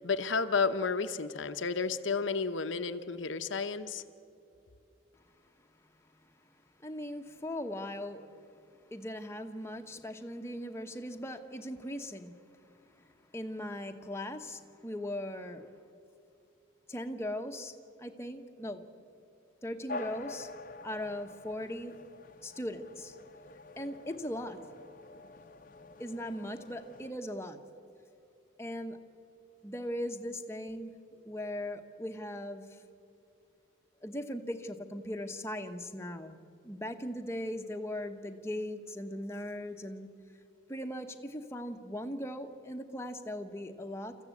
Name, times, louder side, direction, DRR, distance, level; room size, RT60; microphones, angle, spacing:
voice 1, 0.0-4.0, left 4 dB, 85° left, 8 dB, 0.9 m, -31 dB
voice 2, 6.8-8.3 8.9-12.4 12.9-15.7 16.9-18.8 19.6-20.5 20.8-22.0 22.4-23.2 23.8-24.6 26.0-27.6 28.6-29.0 29.6-30.9 31.2-32.8 34.0-36.4 36.6-40.1 40.7-44.2, left 1 dB, 15° left, 5 dB, 1.0 m, -39 dB
sound 1, 19.9-27.1, left 2 dB, 45° left, 0.8 m, -46 dB
27.0 x 14.5 x 8.4 m, 2.6 s
head